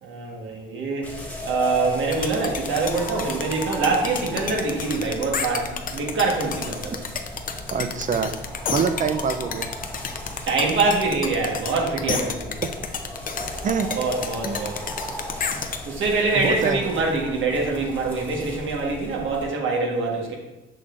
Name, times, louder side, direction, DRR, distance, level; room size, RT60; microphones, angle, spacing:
voice 1, 0.0-1.1 1.4-6.9 10.5-12.6 14.0-14.8 15.8-20.4, right 3 dB, 75° right, 0 dB, 1.4 m, -24 dB
sound 1, 1.0-19.5, left 1 dB, 5° left, 1.2 m, -36 dB
sound 2, 2.1-15.8, left 6 dB, 45° left, 0.6 m, -30 dB
voice 2, 7.7-8.4 8.7-9.7 13.6-13.9 14.4-14.7 16.3-17.1, right 6 dB, 40° right, 9 dB, 0.5 m, -25 dB
6.2 x 6.2 x 2.5 m, 1.0 s
cardioid pair, 90°, 20 cm